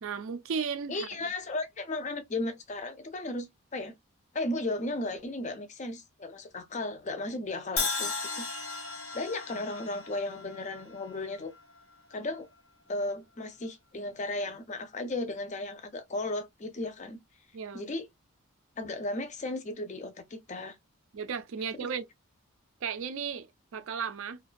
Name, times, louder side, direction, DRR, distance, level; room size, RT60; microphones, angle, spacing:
voice 1, 0.0-1.1 17.5-17.9 21.1-22.0 22.8-24.4, right 6 dB, 65° right, 0.4 m, -35 dB
voice 2, 0.9-3.9 4.3-8.5 9.1-11.5 12.1-12.5 12.9-17.2 17.7-18.1 18.8-20.8 21.8-21.9, left 2 dB, 35° left, 0.5 m, -35 dB
Crash cymbal, 7.8-11.8, left 4 dB, 90° left, 1.0 m, -36 dB
2.5 x 2.3 x 2.4 m
head